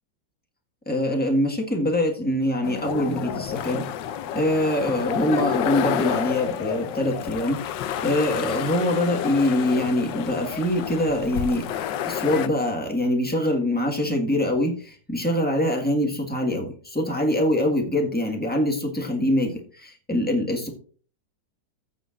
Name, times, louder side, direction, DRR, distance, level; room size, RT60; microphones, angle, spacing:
voice 1, 0.9-3.9 4.3-7.6 8.0-11.7 12.0-20.7, left 1 dB, 5° left, 1 dB, 1.5 m, -24 dB
sound 1, 2.6-12.5, left 10 dB, 80° left, 1.3 m, -29 dB
14.5 x 7.4 x 2.5 m, 0.42 s
omnidirectional pair, 2.0 m